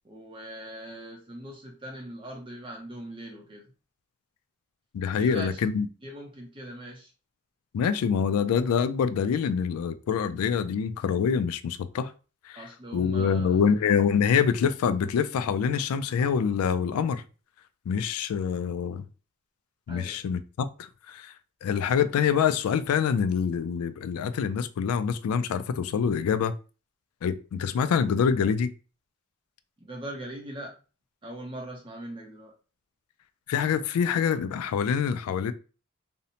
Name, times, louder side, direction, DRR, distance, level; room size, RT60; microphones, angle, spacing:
voice 1, 0.1-3.6 5.1-5.6 6.0-7.1 12.5-13.6 19.9-20.2 29.8-30.8 31.2-32.5, right 1 dB, 25° right, 0.5 m, -41 dB
voice 2, 4.9-5.9 7.7-12.1 12.5-17.2 17.9-19.1 19.9-21.3 21.6-26.5 27.2-28.7 33.5-35.5, left 7 dB, 90° left, 0.3 m, -25 dB
2.6 x 2.0 x 2.8 m
head